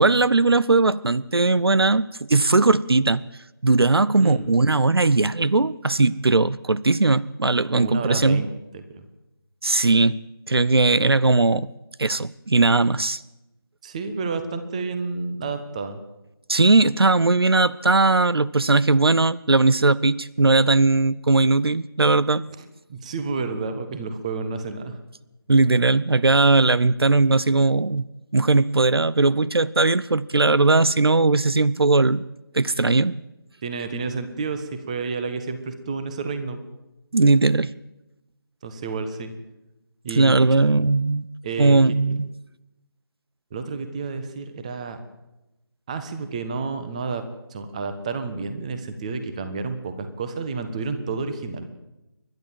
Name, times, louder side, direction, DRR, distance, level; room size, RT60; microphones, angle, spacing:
voice 1, 0.0-3.2 3.6-8.4 9.6-10.2 10.5-11.7 12.0-13.2 16.5-22.4 25.5-28.0 28.3-32.2 32.5-33.2 37.1-37.7 40.2-41.2 41.6-42.3, right 3 dB, 75° right, 18 dB, 0.7 m, -19 dB
voice 2, 7.7-8.5 8.7-9.0 13.8-16.0 22.9-25.0 33.6-36.6 38.6-39.3 40.0-40.7 41.4-41.8 43.5-45.0 45.9-47.2 47.5-51.7, right 4 dB, 15° right, 9 dB, 1.3 m, -30 dB
29.5 x 12.0 x 7.5 m, 0.96 s
figure-of-eight pair, 165°, 13 cm